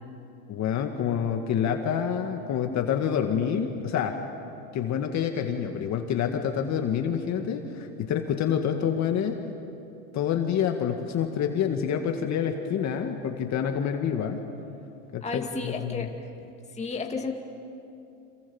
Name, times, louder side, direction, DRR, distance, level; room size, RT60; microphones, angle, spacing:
voice 1, 0.5-4.1 4.7-9.4 10.1-14.4 15.1-16.1, left 8 dB, 40° left, 4 dB, 2.1 m, -27 dB
voice 2, 15.2-16.1 16.7-17.3, left 4 dB, 15° left, 2 dB, 2.4 m, -32 dB
29.5 x 27.0 x 7.2 m, 2.7 s
supercardioid pair, 130°, 45 cm